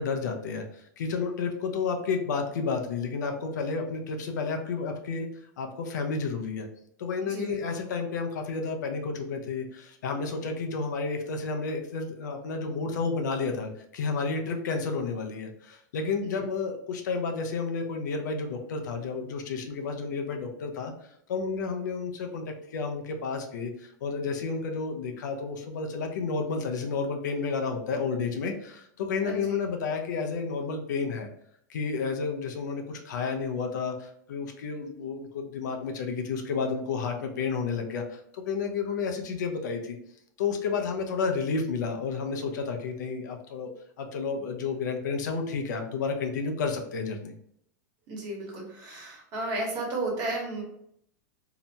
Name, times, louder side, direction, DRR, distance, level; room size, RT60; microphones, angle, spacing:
voice 1, 0.0-5.3 5.6-6.7 7.0-20.9 21.3-31.3 31.7-40.0 40.4-43.7 44.0-47.3, left 4 dB, 80° left, 4 dB, 0.5 m, -31 dB
voice 2, 7.3-7.8 16.2-16.4 29.2-29.6 48.1-50.6, right 2 dB, 45° right, -1 dB, 1.3 m, -33 dB
2.8 x 2.1 x 2.7 m, 0.70 s
hypercardioid pair, 115°, 10 cm